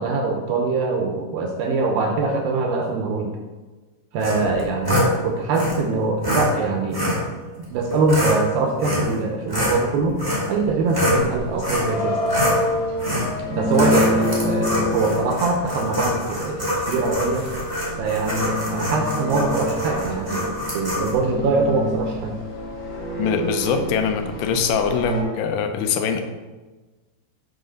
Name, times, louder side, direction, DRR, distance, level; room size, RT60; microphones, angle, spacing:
voice 1, 0.0-3.3 4.1-7.1 7.6-10.2 10.5-12.2 13.5-17.5 18.0-22.3, right 3 dB, 75° right, 2 dB, 2.2 m, -23 dB
sound 1, 4.2-5.1 5.5-5.7 6.2-6.5 6.9-7.2 7.9-8.4 8.8-9.2 9.5-11.2 11.6-11.9 12.3-12.6 13.0-13.3 13.7-21.1, left 1 dB, 25° right, 0.5 m, -25 dB
sound 2, 11.1-25.2, equal, 40° left, 1.8 m, -28 dB
voice 2, 23.2-26.2, left 6 dB, 80° left, 5 dB, 2.7 m, -23 dB
7.9 x 4.2 x 6.4 m, 1.3 s
omnidirectional pair, 4.8 m